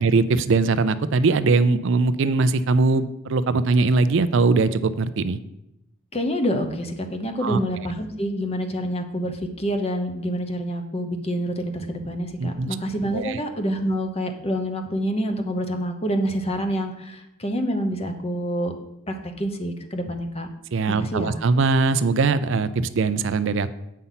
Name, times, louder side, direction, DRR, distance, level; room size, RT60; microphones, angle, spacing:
voice 1, 0.0-5.4 7.4-7.6 12.4-12.8 13.1-13.4 20.7-23.7, right 3 dB, 65° right, 13 dB, 0.4 m, -21 dB
voice 2, 6.1-18.7 19.1-20.5 21.0-21.3, equal, 30° left, 6 dB, 1.0 m, -27 dB
8.3 x 5.6 x 5.7 m, 0.85 s
head